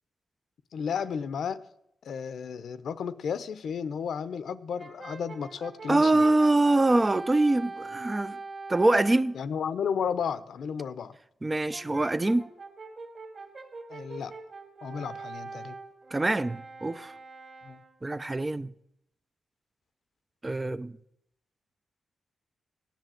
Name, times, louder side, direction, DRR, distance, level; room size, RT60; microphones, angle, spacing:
voice 1, 0.7-1.6 2.0-6.2 9.3-11.2 13.9-14.3 14.8-15.7 17.6-17.8, left 7 dB, 75° left, 0.8 m, -33 dB
Brass instrument, 4.8-9.3 11.7-18.0, right 3 dB, 40° right, 2.1 m, -43 dB
voice 2, 5.9-8.4 8.7-9.4 11.4-12.5 16.1-17.1 18.0-18.7 20.4-21.0, right 2 dB, 20° right, 0.5 m, -24 dB
16.0 x 10.5 x 7.7 m
wide cardioid pair, 140°, 0 cm